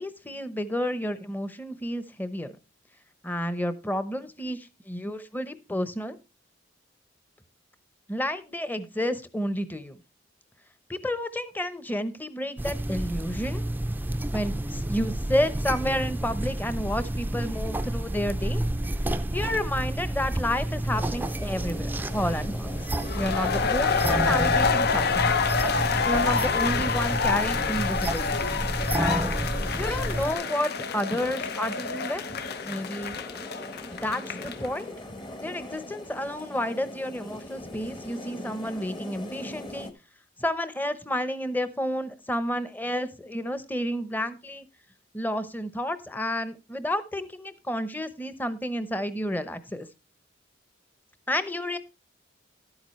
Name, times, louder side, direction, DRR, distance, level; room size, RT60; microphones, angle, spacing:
voice 1, 0.0-2.6 3.2-6.2 8.1-10.0 10.9-13.6 14.3-18.6 19.3-22.8 23.1-25.2 26.1-28.4 28.9-29.3 29.8-32.2 32.6-33.2 33.9-34.8 35.4-39.9 40.4-44.7 45.1-49.9 51.3-51.8, equal, 10° left, 13 dB, 0.8 m, -30 dB
sound 1, 12.6-30.3, right 1 dB, 10° right, 0.5 m, -30 dB
sound 2, 20.9-39.9, left 1 dB, 25° left, 1.2 m, -41 dB
sound 3, 23.0-34.7, left 5 dB, 55° left, 0.6 m, -27 dB
12.0 x 8.8 x 3.1 m, 0.28 s
head